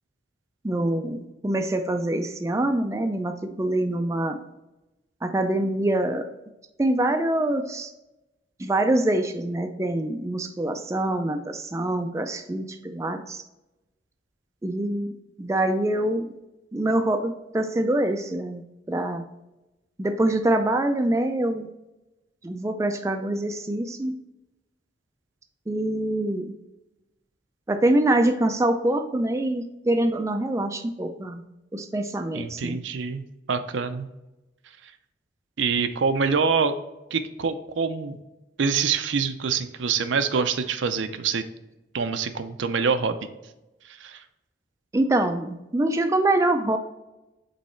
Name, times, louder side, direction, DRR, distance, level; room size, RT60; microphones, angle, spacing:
voice 1, 0.6-4.4 5.2-6.3 6.8-7.9 8.6-13.4 14.6-15.1 15.4-16.3 16.7-18.6 18.9-19.2 20.0-21.7 22.4-24.1 25.7-26.5 27.7-31.4 31.7-32.8 44.9-46.8, right 1 dB, 15° right, 6 dB, 0.3 m, -25 dB
voice 2, 32.3-33.2 33.5-34.1 34.8-34.9 35.6-36.7 37.1-38.2 38.6-41.4 41.9-43.2 43.8-44.2, right 5 dB, 80° right, 10 dB, 0.5 m, -25 dB
5.3 x 4.1 x 4.3 m, 0.98 s
head